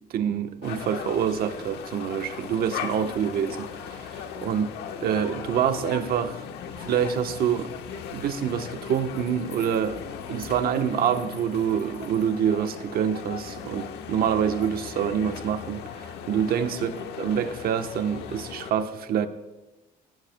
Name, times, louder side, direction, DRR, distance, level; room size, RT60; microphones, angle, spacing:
voice 1, 0.1-4.7 5.0-6.4 6.8-7.7 8.1-10.0 10.3-19.3, right 8 dB, 65° right, 1.1 m, -26 dB
sound 1, 0.6-18.7, left 7 dB, 80° left, 1.2 m, -38 dB
18.5 x 15.5 x 2.3 m
cardioid pair, 110°, 17 cm